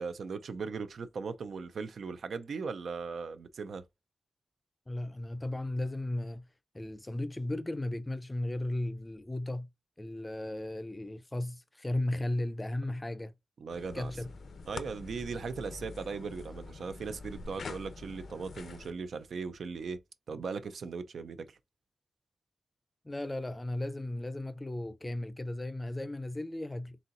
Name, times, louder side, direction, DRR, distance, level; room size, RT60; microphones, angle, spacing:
voice 1, 0.0-3.8 13.6-14.1 14.7-20.0 20.3-21.6, right 5 dB, 75° right, 0.5 m, -38 dB
voice 2, 4.9-6.4 6.7-9.7 10.0-13.3 13.9-14.3 23.0-27.0, left 1 dB, 15° left, 0.5 m, -35 dB
sound 1, 13.7-18.9, left 4 dB, 70° left, 0.6 m, -45 dB
4.2 x 3.8 x 2.5 m
wide cardioid pair, 155°, 0 cm